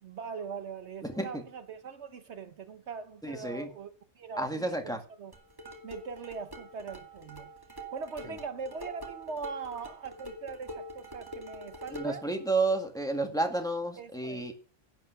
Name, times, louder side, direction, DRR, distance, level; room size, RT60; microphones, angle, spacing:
voice 1, 0.0-5.3 5.8-7.5 7.9-12.3 14.0-14.5, right 5 dB, 65° right, 1.1 m, -41 dB
voice 2, 1.0-1.4 3.2-3.7 4.4-5.0 11.9-14.5, right 2 dB, 5° left, 1.8 m, -31 dB
sound 1, 5.3-12.3, equal, 20° right, 2.1 m, -45 dB
11.0 x 8.9 x 5.7 m
omnidirectional pair, 1.3 m